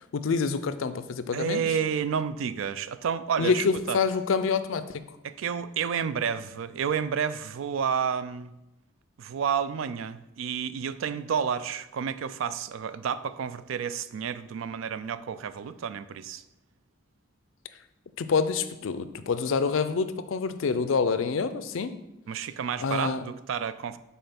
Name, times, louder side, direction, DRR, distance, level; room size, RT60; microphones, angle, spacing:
voice 1, 0.1-1.6 3.4-5.0 18.2-21.9 22.8-23.2, left 5 dB, 80° left, 12 dB, 0.4 m, -27 dB
voice 2, 1.3-4.0 5.2-8.5 9.2-16.4 22.3-24.0, right 7 dB, 80° right, 14 dB, 0.4 m, -30 dB
5.5 x 4.2 x 5.8 m, 0.93 s
head